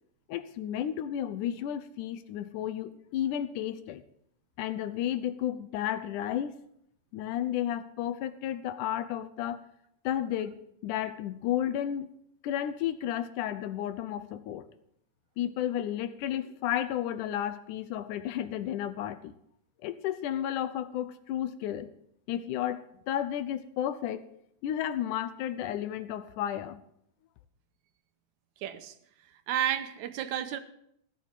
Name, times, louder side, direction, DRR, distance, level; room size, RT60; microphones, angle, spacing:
voice 1, 0.3-4.0 4.6-6.5 7.1-9.6 10.0-12.1 12.4-14.7 15.4-19.3 19.8-21.9 22.3-24.3 24.6-26.8, left 11 dB, 90° left, 12 dB, 2.4 m, -32 dB
voice 2, 28.6-28.9 29.5-30.6, right 10 dB, 80° right, 10 dB, 2.2 m, -31 dB
16.0 x 6.9 x 7.4 m, 0.73 s
omnidirectional pair, 3.5 m